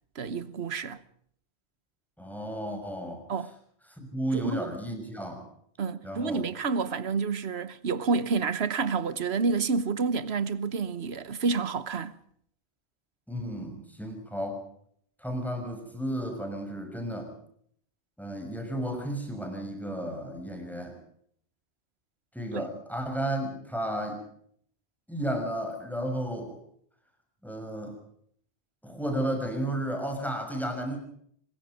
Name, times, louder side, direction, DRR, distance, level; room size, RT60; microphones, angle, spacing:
voice 1, 0.1-1.0 3.3-3.5 4.3-4.7 5.8-12.2 22.5-22.6, right 4 dB, 70° right, 1.4 m, -29 dB
voice 2, 2.2-3.3 4.0-5.5 6.0-6.4 13.3-14.6 15.2-17.3 18.2-21.0 22.3-24.2 25.1-26.6 27.4-28.0 28.8-31.0, right 1 dB, ahead, 6.2 m, -33 dB
24.5 x 21.5 x 5.2 m
omnidirectional pair, 1.1 m